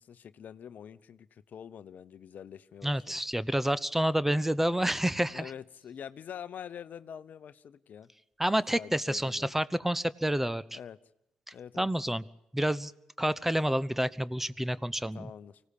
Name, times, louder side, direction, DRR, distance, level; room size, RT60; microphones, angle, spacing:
voice 1, 0.0-3.2 5.3-8.1 8.7-9.6 10.7-11.0 11.5-11.9 15.1-15.6, left 8 dB, 60° left, 15 dB, 0.8 m, -45 dB
voice 2, 2.8-5.5 8.4-10.8 11.8-12.2 12.5-12.9 13.2-15.3, right 1 dB, 10° right, 19 dB, 1.0 m, -29 dB
25.0 x 17.0 x 8.5 m, 0.84 s
hypercardioid pair, 45°, 3 cm